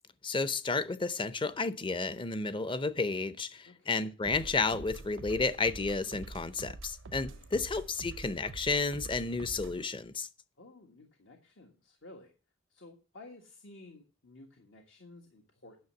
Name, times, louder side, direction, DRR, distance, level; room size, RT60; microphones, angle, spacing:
voice 1, 0.2-10.3, left 3 dB, 25° left, 0.6 m, -32 dB
voice 2, 3.6-4.1 7.2-7.9 10.6-12.3 12.7-15.8, left 2 dB, 70° left, 1.6 m, -54 dB
sound 1, 4.2-9.9, right 3 dB, 75° right, 0.6 m, -46 dB
9.5 x 6.6 x 7.0 m
head